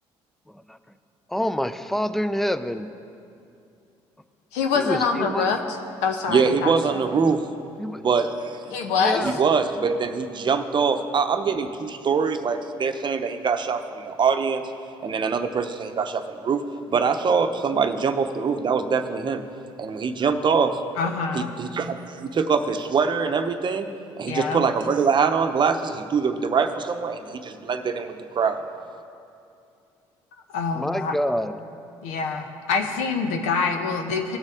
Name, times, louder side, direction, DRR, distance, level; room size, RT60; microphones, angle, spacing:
voice 1, 1.3-2.9 4.8-5.5 7.8-8.0 9.0-9.4 30.7-31.6, equal, ahead, 11 dB, 0.5 m, -27 dB
voice 2, 4.5-5.8 6.0-7.0 8.7-9.3 21.0-21.6 24.3-24.7 30.5-31.2 32.0-34.4, left 5 dB, 85° left, 5 dB, 0.9 m, -25 dB
voice 3, 6.3-7.5 8.0-8.6 9.2-14.7 15.0-16.6 16.9-19.4 19.8-20.8 21.3-23.9 24.2-28.6, right 5 dB, 40° right, 7 dB, 0.8 m, -23 dB
18.0 x 6.5 x 3.7 m, 2.5 s
supercardioid pair, 70°, 11 cm